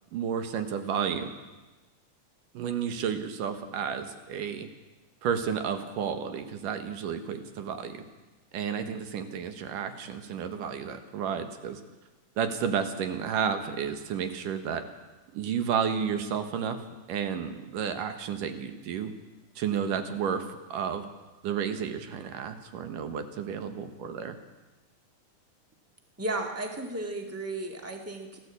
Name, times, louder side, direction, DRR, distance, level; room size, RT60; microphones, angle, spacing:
voice 1, 0.1-1.3 2.5-4.7 5.2-8.0 8.5-11.8 12.4-14.8 15.3-16.8 17.1-19.1 19.6-21.1 21.4-24.4, right 7 dB, 85° right, 8 dB, 3.0 m, -31 dB
voice 2, 26.2-28.4, right 2 dB, 5° right, 3 dB, 1.5 m, -34 dB
29.0 x 12.0 x 8.3 m, 1.2 s
omnidirectional pair, 3.7 m